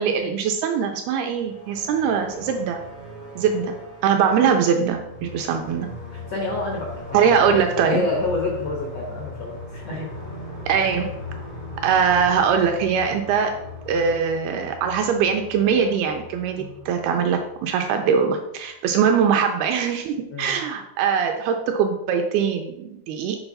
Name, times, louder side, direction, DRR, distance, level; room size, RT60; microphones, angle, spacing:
voice 1, 0.0-2.8 3.4-3.8 4.0-5.9 7.1-8.1 10.7-11.1 11.8-13.5 13.9-23.4, right 7 dB, 80° right, 4 dB, 2.3 m, -22 dB
sound 1, 1.2-18.1, left 2 dB, 55° left, 0.5 m, -39 dB
voice 2, 6.1-10.1 16.6-16.7 20.3-20.6, left 2 dB, 80° left, -2 dB, 1.4 m, -28 dB
8.1 x 3.8 x 5.4 m, 0.82 s
omnidirectional pair, 4.9 m